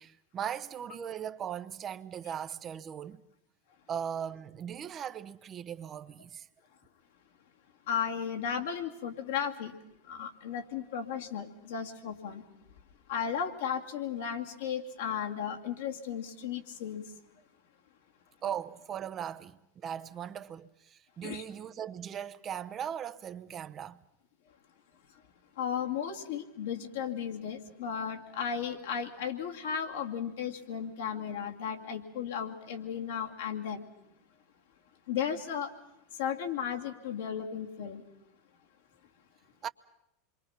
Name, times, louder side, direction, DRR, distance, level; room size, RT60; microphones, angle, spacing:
voice 1, 0.0-3.2 3.9-6.5 18.4-19.6 19.8-24.0 39.6-39.7, right 9 dB, 35° right, 0.9 m, -38 dB
voice 2, 7.9-9.7 10.1-12.4 13.1-17.0 21.2-21.4 25.6-33.8 35.1-35.7 36.2-38.0, left 8 dB, 70° left, 2.3 m, -35 dB
27.5 x 23.5 x 5.8 m
hypercardioid pair, 90°, 0 cm